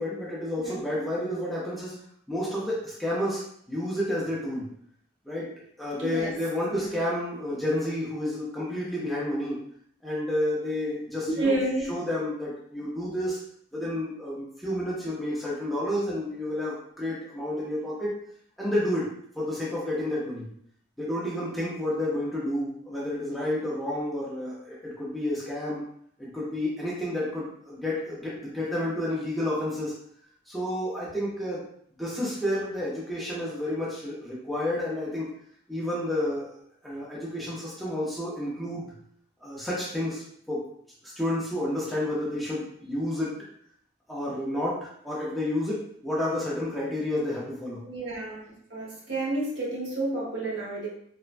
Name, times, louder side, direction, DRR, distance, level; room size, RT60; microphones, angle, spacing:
voice 1, 0.0-2.0 2.3-4.7 5.3-5.5 5.8-9.6 10.0-11.6 11.9-13.4 13.7-18.2 18.6-19.1 19.3-20.5 21.0-25.8 26.2-29.9 30.5-31.6 32.0-35.3 35.7-38.8 39.4-40.6 41.0-43.4 44.1-47.8, left 1 dB, ahead, -7 dB, 0.5 m, -30 dB
voice 2, 6.0-6.3 6.7-6.8 11.4-11.9 47.8-50.9, right 2 dB, 65° right, -6 dB, 1.1 m, -30 dB
3.2 x 2.1 x 2.4 m, 0.66 s
head